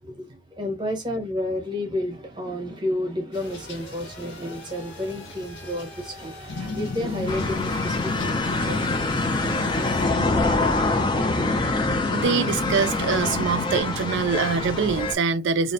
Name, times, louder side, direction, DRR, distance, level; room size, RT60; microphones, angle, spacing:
voice 1, 0.0-10.0, left 1 dB, 25° right, 0.9 m, -31 dB
sound 1, 3.3-10.1, left 1 dB, 65° left, 1.0 m, -42 dB
sound 2, 6.5-13.8, left 3 dB, 80° left, 0.5 m, -31 dB
sound 3, 7.3-15.2, left 2 dB, 25° left, 0.4 m, -25 dB
voice 2, 12.1-15.7, right 5 dB, 60° right, 0.3 m, -24 dB
2.5 x 2.0 x 2.5 m
head